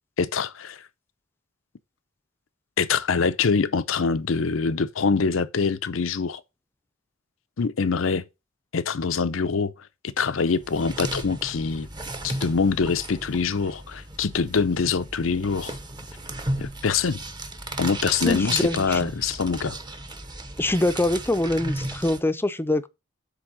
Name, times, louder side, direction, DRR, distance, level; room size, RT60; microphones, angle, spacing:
voice 1, 0.2-0.8 2.8-6.4 7.6-8.2 8.7-9.7 10.2-11.9 12.2-15.8 16.6-17.2 17.8-19.8, left 5 dB, 85° left, 0.6 m, -24 dB
sound 1, 10.4-22.2, right 1 dB, 20° right, 0.9 m, -35 dB
voice 2, 18.2-19.1 20.6-22.9, left 1 dB, 10° left, 0.5 m, -24 dB
8.2 x 3.5 x 6.2 m
head